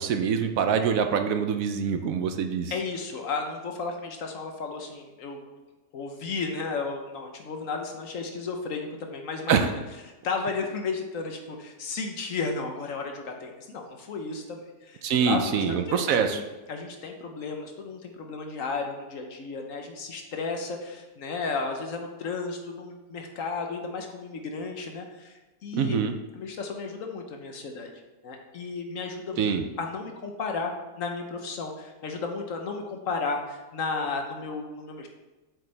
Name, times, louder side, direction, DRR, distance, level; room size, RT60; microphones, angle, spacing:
voice 1, 0.0-2.7 9.5-9.7 15.0-16.4 25.7-26.1 29.4-29.6, right 6 dB, 70° right, 7 dB, 1.0 m, -25 dB
voice 2, 2.7-5.4 5.9-9.7 10.2-16.4 16.7-26.0 26.4-27.9 28.2-30.7 31.0-35.1, left 4 dB, 60° left, 3 dB, 1.3 m, -33 dB
8.1 x 6.6 x 3.4 m, 1.2 s
omnidirectional pair, 1.6 m